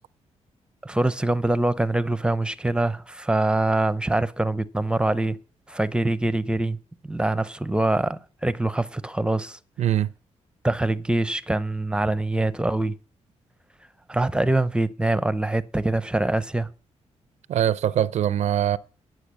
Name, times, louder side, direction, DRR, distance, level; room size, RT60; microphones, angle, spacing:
voice 1, 0.8-5.4 5.7-6.8 7.0-9.6 10.6-12.9 14.1-16.7, right 2 dB, 10° right, 0.6 m, -24 dB
voice 2, 9.8-10.1 17.5-18.8, right 11 dB, 70° right, 0.4 m, -22 dB
9.3 x 8.4 x 6.3 m
cardioid pair, 100°, 12 cm